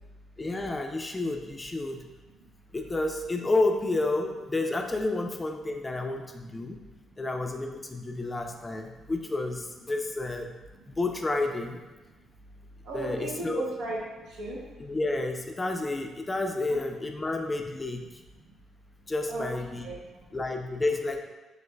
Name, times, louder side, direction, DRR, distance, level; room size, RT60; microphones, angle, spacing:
voice 1, 0.4-2.0 2.7-6.8 7.2-10.5 10.9-11.8 12.9-13.6 14.8-18.0 19.1-19.9 20.3-21.2, left 2 dB, 20° left, 4 dB, 0.3 m, -30 dB
voice 2, 12.8-14.6 16.7-16.8 18.4-18.5 19.3-19.5 19.8-20.2, right 2 dB, 80° right, -4 dB, 0.9 m, -37 dB
3.1 x 2.4 x 3.3 m, 1.1 s
cardioid pair, 90°, 0 cm